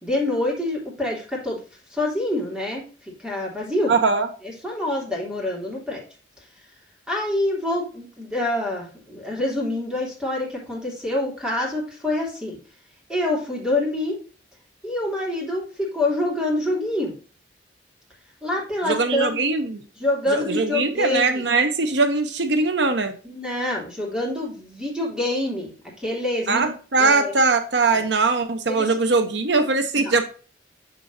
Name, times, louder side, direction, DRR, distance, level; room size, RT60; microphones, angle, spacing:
voice 1, 0.0-1.6 1.9-2.8 3.2-3.9 4.4-6.0 7.1-12.6 13.1-14.2 14.8-17.1 18.4-19.3 20.0-21.4 23.2-25.7 26.0-26.7 27.0-27.3 27.9-28.0 28.7-28.9 29.9-30.1, left 1 dB, 5° right, -3 dB, 3.3 m, -26 dB
voice 2, 3.9-4.3 18.8-19.8 20.3-23.1 26.5-30.2, right 3 dB, 80° right, 8 dB, 0.9 m, -21 dB
6.9 x 6.9 x 2.7 m, 0.37 s
head